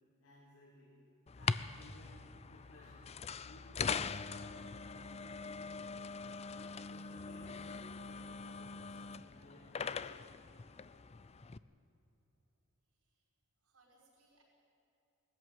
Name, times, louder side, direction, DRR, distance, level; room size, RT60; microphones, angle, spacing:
voice 1, 0.2-1.0 1.3-5.5 6.3-7.5 7.8-9.0 9.3-10.3, left 1 dB, 70° left, -8 dB, 4.8 m, -60 dB
sound 1, 1.3-11.6, left 5 dB, 30° left, 0.4 m, -42 dB
voice 2, 12.9-13.3 13.6-14.4, right 2 dB, 70° right, -4 dB, 5.5 m, -70 dB
20.0 x 14.0 x 9.2 m, 2.9 s
head